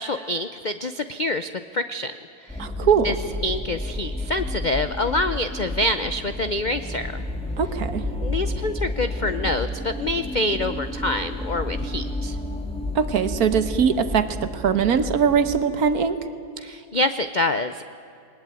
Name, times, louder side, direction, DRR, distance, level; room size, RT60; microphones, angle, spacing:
voice 1, 0.0-3.1 3.4-7.2 8.2-12.4 16.6-17.9, left 1 dB, 55° left, 10 dB, 0.5 m, -26 dB
sound 1, 2.5-15.6, left 1 dB, 5° left, 1.7 m, -31 dB
voice 2, 2.6-3.2 7.6-8.0 12.9-16.2, right 7 dB, 65° right, 11 dB, 1.6 m, -21 dB
20.5 x 19.5 x 9.2 m, 2.6 s
omnidirectional pair, 1.7 m